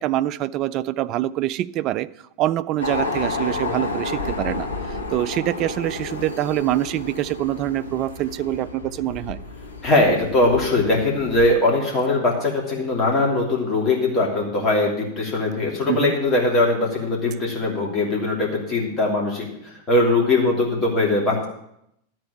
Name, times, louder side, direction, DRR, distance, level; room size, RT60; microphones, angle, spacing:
voice 1, 0.0-2.1 2.4-4.7 5.1-9.4 15.9-16.1, right 14 dB, 35° right, 0.3 m, -25 dB
sound 1, 2.8-11.5, left 3 dB, 85° left, 1.0 m, -31 dB
voice 2, 9.8-21.4, left 2 dB, 25° left, 3.0 m, -21 dB
12.0 x 4.6 x 8.5 m
figure-of-eight pair, 90°, 0 cm